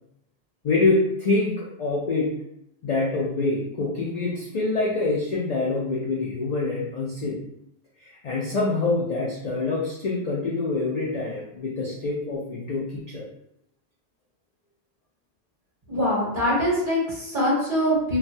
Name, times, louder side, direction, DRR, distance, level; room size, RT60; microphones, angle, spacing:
voice 1, 0.6-2.3 2.8-7.4 8.2-13.2, left 3 dB, 55° left, -4 dB, 0.4 m, -25 dB
voice 2, 15.9-18.2, equal, 50° right, -8 dB, 1.7 m, -23 dB
3.1 x 2.2 x 2.6 m, 0.77 s
omnidirectional pair, 1.2 m